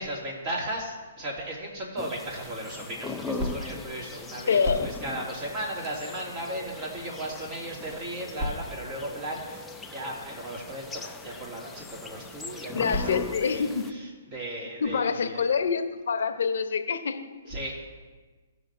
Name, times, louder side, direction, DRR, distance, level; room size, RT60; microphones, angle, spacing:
voice 1, 0.0-15.5 17.5-17.8, right 1 dB, 35° right, -2 dB, 2.3 m, -35 dB
sound 1, 2.0-13.9, left 3 dB, 5° left, 0.4 m, -40 dB
voice 2, 4.5-4.9 12.7-13.9 14.8-17.6, left 6 dB, 70° left, 7 dB, 0.7 m, -26 dB
16.0 x 5.8 x 2.6 m, 1.3 s
hypercardioid pair, 140°, 0 cm